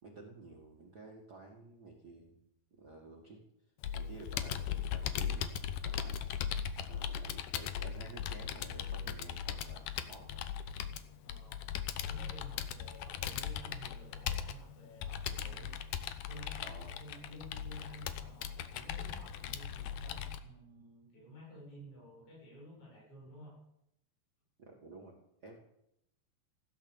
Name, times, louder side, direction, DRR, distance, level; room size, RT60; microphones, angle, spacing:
voice 1, 0.0-2.4 2.7-3.4 3.9-5.5 5.8-6.3 6.9-10.4 16.6-16.9 24.6-25.2 25.4-25.5, right 2 dB, 70° right, 0 dB, 0.9 m, -52 dB
Computer keyboard, 3.8-20.4, left 9 dB, 85° left, 1.8 m, -39 dB
voice 2, 6.8-7.1 11.2-11.6 12.0-15.7 16.3-16.7 17.0-23.5, equal, 35° left, -7 dB, 7.8 m, -52 dB
15.5 x 11.0 x 7.1 m, 0.80 s
omnidirectional pair, 4.9 m